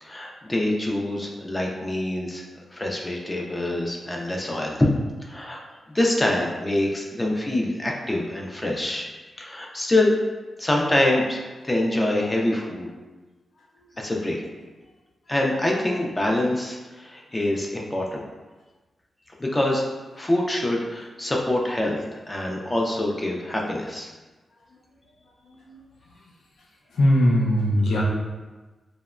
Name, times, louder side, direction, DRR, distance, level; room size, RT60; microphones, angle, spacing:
voice 1, 0.0-2.4 2.7-4.9 5.2-5.6 5.9-9.1 9.4-10.1 10.6-11.4 11.6-12.9 14.0-14.4 15.3-18.2 19.4-19.8 20.2-24.1, left 1 dB, 15° left, -1 dB, 0.3 m, -25 dB
voice 2, 27.0-28.0, equal, 85° left, -2 dB, 0.5 m, -19 dB
2.8 x 2.1 x 2.3 m, 1.2 s
wide cardioid pair, 155°, 0 cm